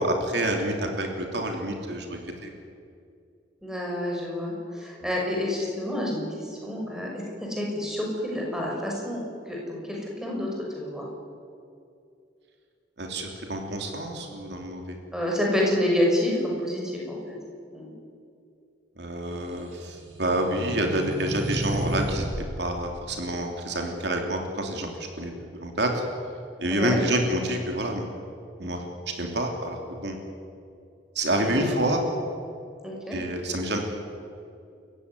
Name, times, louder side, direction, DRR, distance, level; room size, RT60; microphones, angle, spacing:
voice 1, 0.0-2.5 13.0-15.0 19.0-22.3 22.6-24.9 25.2-26.0 26.6-28.1 28.6-28.8 29.2-30.2 31.1-32.0 33.1-33.8, right 1 dB, 65° right, 2 dB, 3.2 m, -28 dB
voice 2, 3.6-9.2 9.5-11.1 15.1-17.4 17.7-17.9 26.7-27.0 31.4-31.7 32.8-33.2, left 1 dB, 5° right, -2 dB, 5.9 m, -28 dB
sound 1, 19.5-22.5, right 1 dB, 85° right, 7.7 m, -32 dB
29.5 x 15.5 x 9.8 m, 2.4 s
head